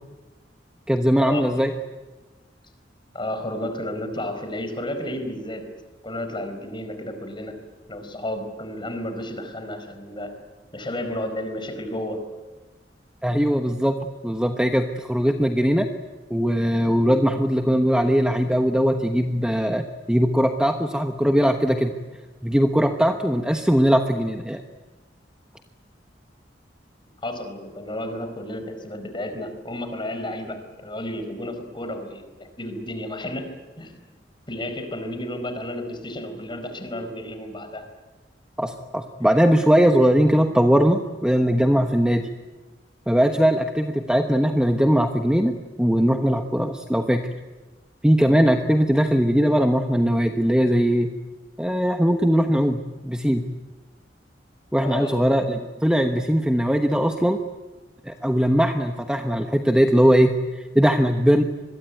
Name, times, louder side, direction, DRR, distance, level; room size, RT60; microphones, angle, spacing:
voice 1, 0.9-1.7 13.2-13.9 14.2-15.9 16.3-21.9 22.4-24.6 38.6-42.3 43.1-47.3 48.0-51.1 51.6-53.5 54.7-57.4 58.0-61.4, equal, 5° right, 5 dB, 1.1 m, -20 dB
voice 2, 3.1-5.6 6.0-7.5 7.9-10.3 10.7-12.2 27.2-33.5 33.8-33.9 34.5-37.9 54.8-55.2, left 1 dB, 25° left, 7 dB, 4.6 m, -32 dB
26.0 x 22.0 x 9.3 m, 1.2 s
head